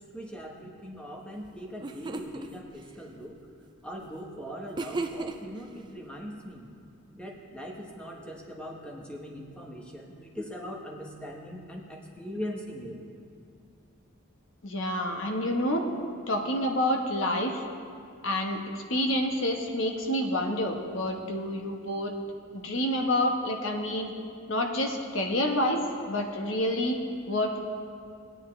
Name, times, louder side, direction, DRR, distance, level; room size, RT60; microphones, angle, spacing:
voice 1, 0.0-3.4 3.8-6.7 7.1-13.0, equal, 5° left, -1 dB, 1.0 m, -40 dB
sound 1, 1.4-1.5 1.8-2.5 4.8-5.6, right 3 dB, 20° right, 0.4 m, -34 dB
voice 2, 14.6-15.9 16.3-17.6 18.2-22.1 22.5-24.1 24.5-27.0 27.3-27.6, left 1 dB, 65° left, 2 dB, 1.1 m, -28 dB
17.0 x 9.9 x 3.2 m, 2.4 s
head